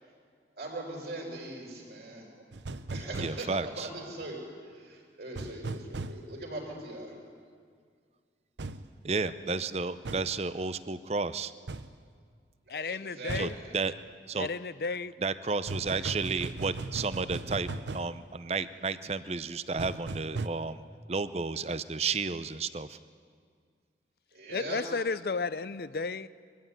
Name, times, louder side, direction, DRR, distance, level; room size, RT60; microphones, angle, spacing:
voice 1, 0.6-2.3 2.9-4.4 4.7-7.1 12.7-13.8 24.3-24.8, right 2 dB, 65° right, 5.7 m, -41 dB
sound 1, 2.5-3.4 5.4-6.2 8.6-8.8 10.1-10.3 11.7-11.9 13.3-13.6 15.7-18.1 19.8-20.5, right 3 dB, 85° right, 0.8 m, -37 dB
voice 2, 3.2-3.9 9.0-11.5 13.3-13.9 14.3-14.5 15.2-20.8 21.1-23.0, right 4 dB, 35° right, 0.6 m, -32 dB
voice 3, 12.7-13.6 14.4-15.1 24.5-26.3, left 4 dB, 55° left, 0.5 m, -33 dB
23.0 x 15.0 x 9.1 m
head